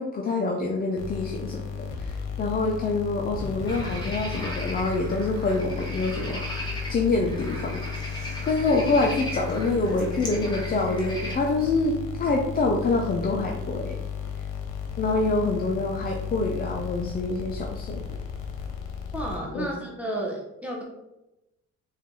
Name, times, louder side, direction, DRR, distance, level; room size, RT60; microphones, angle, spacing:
voice 1, 0.0-1.6 2.0-6.4 6.9-8.1 8.4-14.0 15.0-18.1 19.5-19.7, left 3 dB, 30° left, 1 dB, 0.5 m, -26 dB
sound 1, 1.0-19.7, left 6 dB, 85° left, 0.8 m, -34 dB
sound 2, 3.7-11.3, right 1 dB, 15° left, 1.3 m, -38 dB
voice 2, 19.1-20.8, right 1 dB, 5° right, -2 dB, 0.7 m, -32 dB
4.4 x 2.5 x 3.7 m, 0.93 s
cardioid pair, 90°, 30 cm